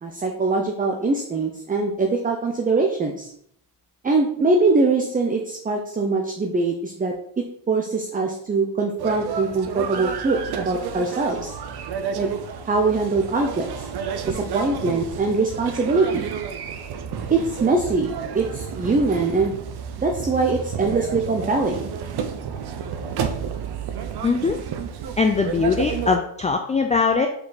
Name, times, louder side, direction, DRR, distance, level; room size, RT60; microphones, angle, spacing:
voice 1, 0.0-3.3 4.0-11.6 12.1-12.3 12.6-13.7 14.3-16.3 17.3-19.5 20.0-21.9, right 3 dB, 15° right, 2 dB, 0.7 m, -22 dB
sound 1, 9.0-26.2, right 7 dB, 50° right, 0.8 m, -31 dB
voice 2, 24.2-24.6 25.2-27.3, left 4 dB, 15° left, 4 dB, 0.4 m, -21 dB
5.4 x 4.4 x 4.0 m, 0.70 s
cardioid pair, 100°, 49 cm